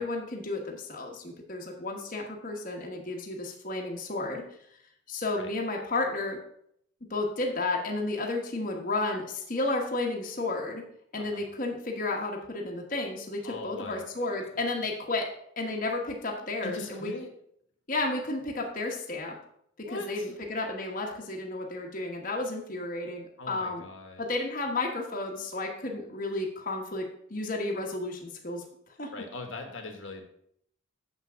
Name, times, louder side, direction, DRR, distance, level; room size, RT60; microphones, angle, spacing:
voice 1, 0.0-4.4 5.1-6.4 7.1-10.8 11.1-15.3 15.6-17.1 17.9-19.4 19.8-23.8 24.2-27.0 27.3-28.6 29.0-29.1, left 2 dB, 40° left, 0 dB, 1.2 m, -32 dB
voice 2, 11.2-11.5 13.4-14.5 16.6-17.3 19.8-20.3 23.4-24.2 29.1-30.3, left 3 dB, 65° left, 5 dB, 1.4 m, -41 dB
7.4 x 5.9 x 6.1 m, 0.69 s
head